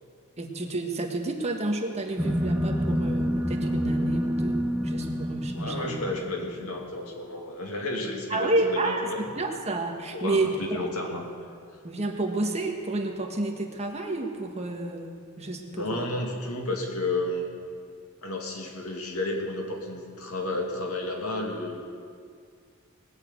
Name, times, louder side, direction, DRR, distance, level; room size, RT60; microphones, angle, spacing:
voice 1, 0.4-6.0 8.3-10.9 11.8-16.1, right 2 dB, 30° right, 2 dB, 1.4 m, -30 dB
sound 1, 2.2-6.8, equal, 5° right, 0.8 m, -28 dB
voice 2, 5.5-9.2 10.1-10.4 10.7-11.2 15.7-17.5 18.2-21.8, left 2 dB, 85° left, 0 dB, 2.4 m, -32 dB
19.5 x 6.6 x 8.1 m, 2.2 s
head